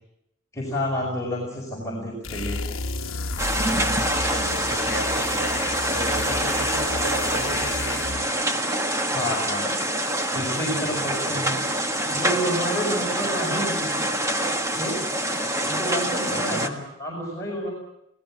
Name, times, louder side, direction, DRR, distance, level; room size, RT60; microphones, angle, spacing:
voice 1, 0.5-2.6 9.1-9.8 10.3-11.6 12.1-14.0 14.7-15.0 15.6-16.7 17.0-17.7, equal, 15° left, -4 dB, 5.3 m, -29 dB
sound 1, 2.2-8.4, left 3 dB, 75° left, 1.2 m, -32 dB
sound 2, 3.4-16.7, right 1 dB, 15° right, 1.5 m, -26 dB
voice 2, 4.4-5.6 5.9-8.1 16.3-16.8, right 1 dB, 65° right, 8 dB, 3.9 m, -35 dB
27.0 x 18.0 x 7.5 m, 0.82 s
head